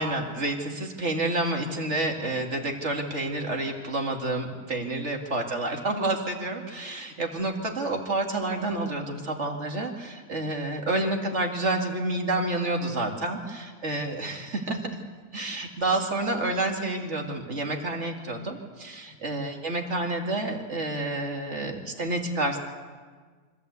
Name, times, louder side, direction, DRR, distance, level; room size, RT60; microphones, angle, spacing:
voice 1, 0.0-14.9 15.3-22.6, right 2 dB, 45° right, 2 dB, 2.5 m, -29 dB
25.0 x 14.5 x 8.2 m, 1.5 s
omnidirectional pair, 1.7 m